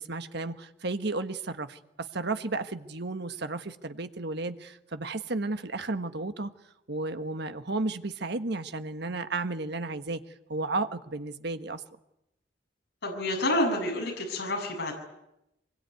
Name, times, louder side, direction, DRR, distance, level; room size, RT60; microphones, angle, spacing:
voice 1, 0.0-6.5 6.9-10.2 10.5-11.8, right 3 dB, 60° right, 9 dB, 1.4 m, -33 dB
voice 2, 13.0-14.9, left 1 dB, 65° left, 0 dB, 7.1 m, -28 dB
25.0 x 22.0 x 9.5 m, 0.86 s
head